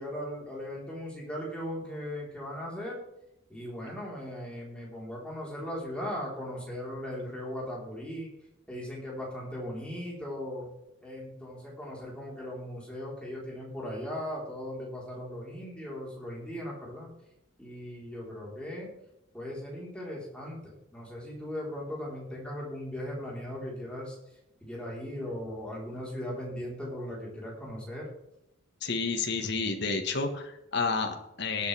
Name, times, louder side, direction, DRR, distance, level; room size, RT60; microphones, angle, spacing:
voice 1, 0.0-3.0 3.5-8.3 8.7-10.7 11.0-17.1 17.6-18.9 19.3-24.2 24.6-28.1, left 1 dB, 5° left, -5 dB, 4.0 m, -38 dB
voice 2, 28.8-31.7, left 4 dB, 55° left, 4 dB, 1.5 m, -30 dB
19.5 x 8.6 x 3.5 m, 0.84 s
head